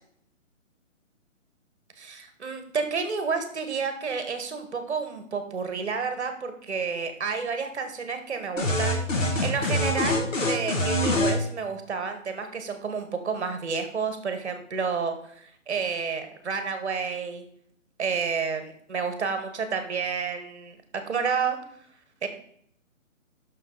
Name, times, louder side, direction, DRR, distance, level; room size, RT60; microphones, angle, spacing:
voice 1, 2.0-17.4 18.0-20.8 21.1-21.6 22.2-22.3, right 5 dB, 55° right, 7 dB, 1.4 m, -30 dB
sound 1, 8.6-11.4, left 1 dB, 70° left, 2.4 m, -24 dB
8.4 x 6.5 x 3.9 m, 0.65 s
hypercardioid pair, 170°, 40 cm